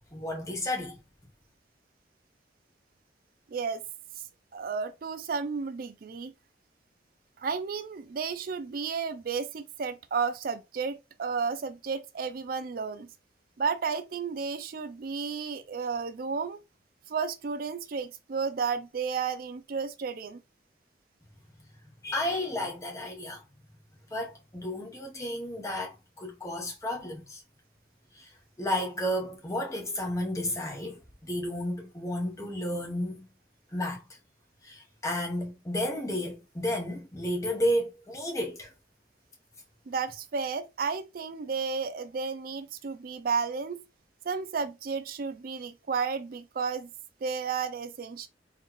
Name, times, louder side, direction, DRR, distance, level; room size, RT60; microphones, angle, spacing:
voice 1, 0.1-1.0 22.0-23.4 24.1-27.4 28.2-28.3 28.6-33.2 33.7-34.0 34.6-38.7, left 1 dB, 20° left, 0.9 m, -32 dB
voice 2, 3.5-3.8 4.5-6.3 7.4-13.1 13.6-16.6 17.1-20.4 39.9-43.8 44.2-46.9 47.2-48.3, right 5 dB, 55° right, 0.4 m, -32 dB
3.9 x 3.0 x 3.0 m
head